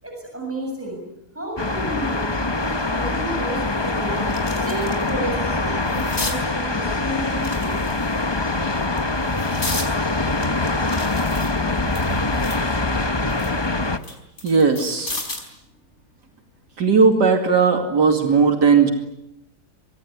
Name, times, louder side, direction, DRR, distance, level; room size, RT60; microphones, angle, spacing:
voice 1, 0.0-1.0 1.3-2.2 2.6-4.2 4.5-7.7, right 1 dB, 5° right, 1 dB, 7.5 m, -31 dB
sound 1, 1.6-14.0, left 2 dB, 20° left, 1.0 m, -24 dB
sound 2, 3.1-3.2 3.7-5.1 5.5-6.4 7.3-8.2 8.8-9.9 10.4-12.7 13.1-15.5 16.9-17.1, left 2 dB, 45° left, 5.1 m, -34 dB
voice 2, 14.4-15.2 16.8-18.9, right 5 dB, 80° right, 5 dB, 3.0 m, -17 dB
26.0 x 22.5 x 9.7 m, 0.88 s
omnidirectional pair, 1.8 m